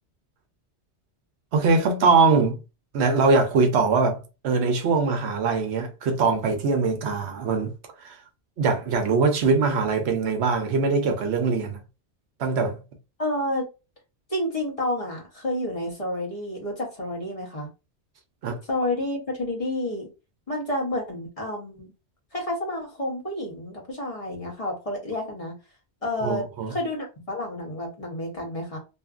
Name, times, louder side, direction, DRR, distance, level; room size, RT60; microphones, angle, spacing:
voice 1, 1.5-2.6 2.9-7.7 8.0-8.2 8.6-11.8 12.4-12.8 18.4-18.6 26.2-26.7, right 4 dB, 75° right, 0.9 m, -22 dB
voice 2, 13.2-13.7 14.3-17.7 18.7-20.1 20.5-21.9 22.3-25.5 26.0-28.8, left 1 dB, 35° left, 0.9 m, -30 dB
2.7 x 2.5 x 2.4 m
omnidirectional pair, 1.2 m